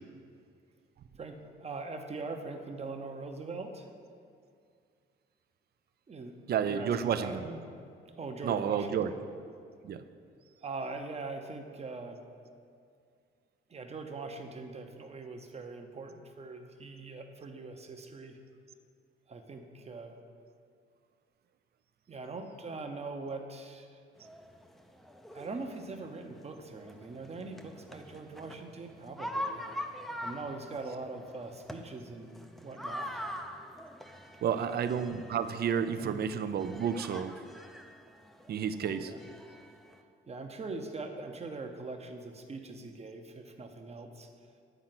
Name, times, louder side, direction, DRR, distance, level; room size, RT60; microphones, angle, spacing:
voice 1, 1.2-3.9 6.1-6.4 6.7-7.7 8.2-9.0 10.6-12.2 13.7-18.4 19.3-20.1 22.1-24.0 25.3-29.6 30.2-33.2 34.5-34.8 35.9-36.2 39.0-39.2 40.3-44.3, right 3 dB, 30° right, 5 dB, 0.8 m, -42 dB
voice 2, 6.5-7.5 8.4-9.1 9.8-10.0 34.4-37.3 38.5-39.1, right 8 dB, 55° right, 10 dB, 0.5 m, -31 dB
sound 1, 24.2-40.0, equal, ahead, 0.5 m, -44 dB
9.1 x 4.3 x 5.9 m, 2.3 s
cardioid pair, 90°, 20 cm